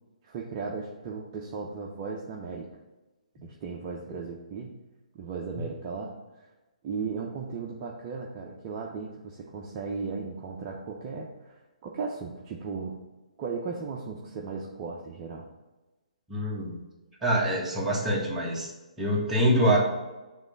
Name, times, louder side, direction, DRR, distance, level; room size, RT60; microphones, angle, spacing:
voice 1, 0.2-2.7 3.4-4.7 5.1-6.1 6.8-13.0 13.4-15.5, right 5 dB, 30° right, -2 dB, 0.7 m, -36 dB
voice 2, 16.3-16.8 17.2-18.7 19.0-19.8, equal, 10° right, -4 dB, 1.5 m, -25 dB
7.3 x 3.3 x 5.1 m, 1.1 s
figure-of-eight pair, 135°, 4 cm